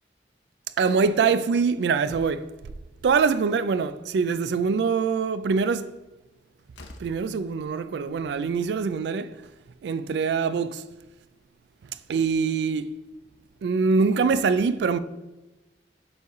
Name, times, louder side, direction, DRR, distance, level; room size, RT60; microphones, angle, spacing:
voice 1, 0.8-2.5 3.0-5.9 7.0-9.4 9.8-10.8 12.1-12.9 13.6-15.0, right 5 dB, 70° right, 0.3 m, -24 dB
Slam, 4.4-4.7 6.2-6.3 6.7-7.3, left 1 dB, 80° left, 0.7 m, -46 dB
7.0 x 3.2 x 4.6 m
head